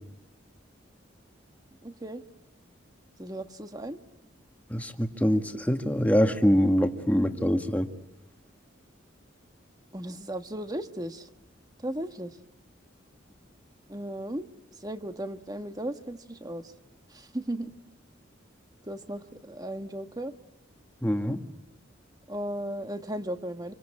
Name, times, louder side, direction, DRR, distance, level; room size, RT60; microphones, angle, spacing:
voice 1, 1.8-2.2 3.2-4.0 9.9-11.3 11.8-12.4 13.9-14.5 14.8-16.7 17.1-17.7 18.8-20.3 22.3-23.7, right 1 dB, 20° right, 8 dB, 1.5 m, -36 dB
voice 2, 4.7-7.9 21.0-21.4, equal, 10° left, 6 dB, 1.7 m, -24 dB
27.5 x 25.0 x 8.7 m, 0.89 s
head